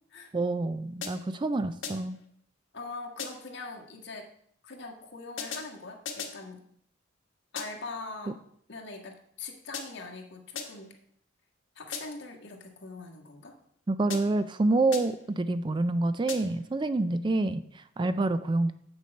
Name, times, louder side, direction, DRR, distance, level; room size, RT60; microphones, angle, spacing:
voice 1, 0.3-2.2 13.9-18.7, right 2 dB, 25° right, 13 dB, 0.3 m, -27 dB
sound 1, 1.0-1.4 1.8-2.2 3.2-3.6 5.4-6.5 7.5-8.0 9.7-10.2 10.5-11.0 11.9-12.3 14.1-14.5 14.9-15.3 16.3-16.7, left 6 dB, 80° left, 1.3 m, -40 dB
voice 2, 2.7-4.3 4.6-6.7 7.5-8.3 8.7-10.9 11.7-13.5, left 3 dB, 60° left, 0 dB, 1.6 m, -42 dB
8.0 x 6.5 x 5.3 m, 0.66 s
head